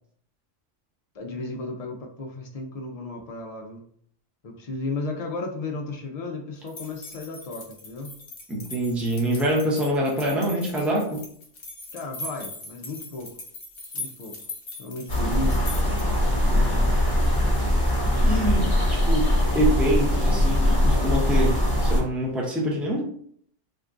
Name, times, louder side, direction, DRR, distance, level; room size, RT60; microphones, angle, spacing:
voice 1, 1.1-3.8 4.4-8.1 11.9-13.3 13.9-14.3 14.8-15.8, left 3 dB, 75° left, 1 dB, 0.3 m, -34 dB
sound 1, 6.7-16.2, left 2 dB, 55° left, 1.1 m, -40 dB
voice 2, 8.5-11.2 16.5-16.9 18.2-18.7 19.0-23.1, right 1 dB, ahead, -2 dB, 0.4 m, -25 dB
sound 2, 15.1-22.0, left 1 dB, 20° left, 1.0 m, -21 dB
2.9 x 2.5 x 3.5 m, 0.62 s
omnidirectional pair, 1.3 m